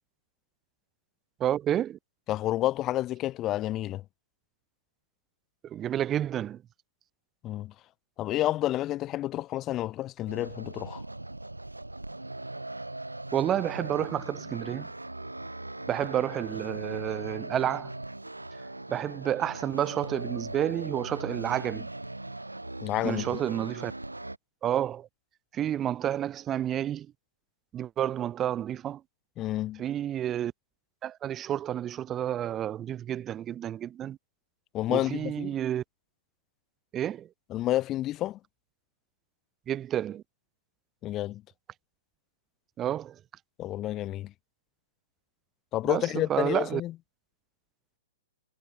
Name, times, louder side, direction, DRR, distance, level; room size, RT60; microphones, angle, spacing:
voice 1, 1.4-2.0 5.6-6.6 13.3-14.9 15.9-17.9 18.9-21.9 23.0-23.9 24.6-25.1 25.5-27.1 27.7-29.0 29.8-30.5 31.0-34.2 34.9-35.8 36.9-37.3 39.7-40.2 42.8-43.2 45.8-46.8, right 11 dB, 20° right, 1.2 m, -30 dB
voice 2, 2.3-4.0 7.4-7.7 8.2-11.0 22.8-23.4 29.4-29.8 34.7-35.5 37.5-38.4 41.0-41.4 43.6-44.3 45.7-46.9, left 14 dB, 25° left, 1.7 m, -30 dB
sound 1, 10.3-24.4, right 2 dB, 90° right, 4.2 m, -39 dB
figure-of-eight pair, 115°, 0 cm